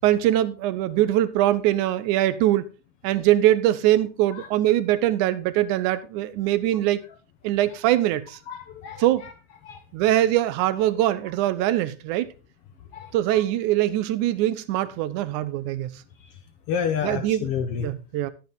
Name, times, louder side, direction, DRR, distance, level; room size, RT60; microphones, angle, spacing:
voice 1, 0.0-2.7 3.0-7.0 7.4-8.4 9.0-9.3 9.9-12.3 13.1-15.9 17.0-17.5 17.8-18.3, right 13 dB, 80° right, 1.8 m, -22 dB
voice 2, 8.5-9.3 9.6-9.8 12.9-13.4 16.2-16.4 16.7-17.9, left 7 dB, 90° left, 1.2 m, -30 dB
12.0 x 9.2 x 3.9 m
omnidirectional pair, 4.1 m